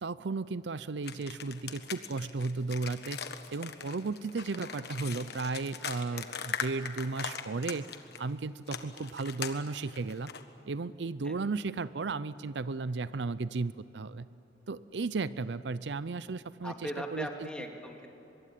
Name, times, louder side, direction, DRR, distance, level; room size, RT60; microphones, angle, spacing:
voice 1, 0.0-3.2 3.5-7.9 8.2-10.3 10.7-14.3 14.7-17.3, right 3 dB, 75° right, 16 dB, 0.6 m, -34 dB
sound 1, 1.0-8.2 8.7-10.4, left 7 dB, 65° left, 1.4 m, -40 dB
voice 2, 16.6-18.1, equal, 5° left, 2 dB, 2.4 m, -39 dB
24.0 x 22.5 x 9.3 m, 3.0 s
head